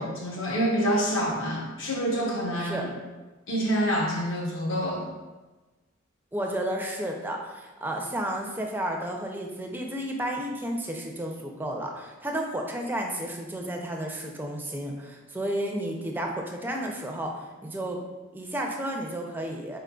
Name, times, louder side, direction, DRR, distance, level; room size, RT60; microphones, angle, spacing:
voice 1, 0.0-2.9 3.5-5.0, equal, 65° left, -2 dB, 0.9 m, -27 dB
voice 2, 6.3-18.0 18.3-19.8, right 1 dB, 10° right, 1 dB, 0.4 m, -32 dB
4.5 x 3.7 x 2.2 m, 1.2 s
head